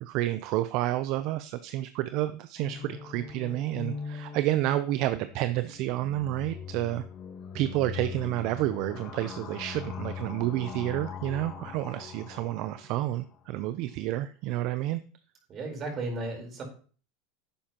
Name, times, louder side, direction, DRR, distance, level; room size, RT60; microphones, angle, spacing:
voice 1, 0.0-7.0 7.5-15.0, right 15 dB, 60° right, 12 dB, 0.5 m, -30 dB
sound 1, 2.6-13.4, left 7 dB, 45° left, 1.4 m, -41 dB
voice 2, 15.5-16.6, right 2 dB, 40° right, 2 dB, 4.2 m, -35 dB
11.0 x 8.5 x 3.0 m, 0.40 s
supercardioid pair, 105°, 0 cm